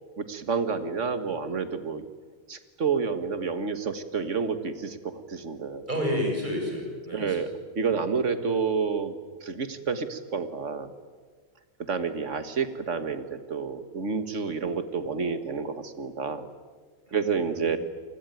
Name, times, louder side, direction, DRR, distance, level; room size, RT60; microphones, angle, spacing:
voice 1, 0.2-2.0 2.5-5.8 7.1-7.5 7.7-10.9 11.9-16.5 17.1-17.8, right 5 dB, 40° right, 10 dB, 1.6 m, -29 dB
voice 2, 5.9-7.5 7.9-8.0 17.4-17.8, equal, 20° right, 1 dB, 7.1 m, -30 dB
28.5 x 20.0 x 9.2 m, 1.6 s
omnidirectional pair, 2.3 m